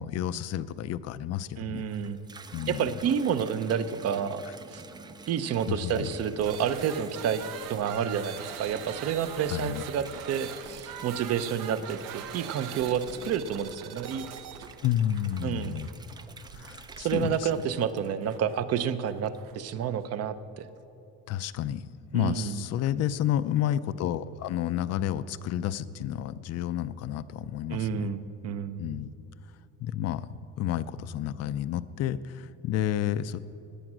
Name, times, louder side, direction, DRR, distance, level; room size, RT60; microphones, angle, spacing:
voice 1, 0.0-1.9 2.5-2.9 5.7-6.1 9.5-9.8 14.8-15.9 16.5-17.5 21.3-21.8 22.1-28.1 28.8-29.1 29.8-30.3 30.6-33.4, left 11 dB, 50° left, 15 dB, 0.5 m, -30 dB
voice 2, 1.6-2.3 2.7-4.4 4.7-4.8 5.3-14.3 15.4-15.7 17.0-20.7 22.1-22.6 27.7-28.8, right 8 dB, 45° right, 13 dB, 0.7 m, -29 dB
Water tap faucet / Bathtub (filling or washing), 1.7-18.6 19.1-19.7, right 3 dB, 15° right, 0.4 m, -49 dB
sound 1, 6.4-19.6, right 9 dB, 70° right, 1.0 m, -43 dB
17.0 x 10.0 x 6.2 m, 2.8 s
cardioid pair, 150°, 33 cm